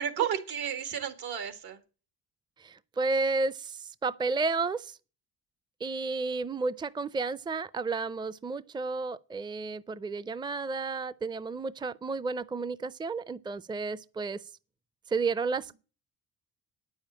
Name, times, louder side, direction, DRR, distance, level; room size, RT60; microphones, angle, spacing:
voice 1, 0.0-1.8, right 9 dB, 75° right, 1.9 m, -32 dB
voice 2, 2.6-5.0 5.8-14.4 15.1-15.7, right 4 dB, 10° right, 0.5 m, -32 dB
9.5 x 7.2 x 8.7 m
cardioid pair, 80°, 39 cm